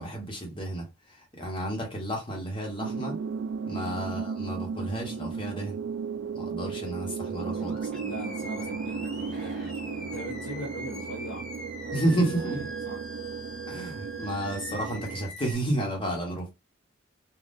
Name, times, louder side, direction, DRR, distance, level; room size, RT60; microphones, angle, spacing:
voice 1, 0.0-3.2 3.6-5.8 6.3-7.9 11.9-12.7 13.7-16.5, right 1 dB, 25° left, 1.1 m, -31 dB
sound 1, 2.8-15.3, right 5 dB, 60° right, 0.3 m, -35 dB
Animal, 7.6-15.5, equal, 5° left, 1.3 m, -43 dB
voice 2, 8.0-11.5 11.8-13.0, left 1 dB, 65° left, 0.9 m, -41 dB
3.6 x 2.3 x 2.6 m
head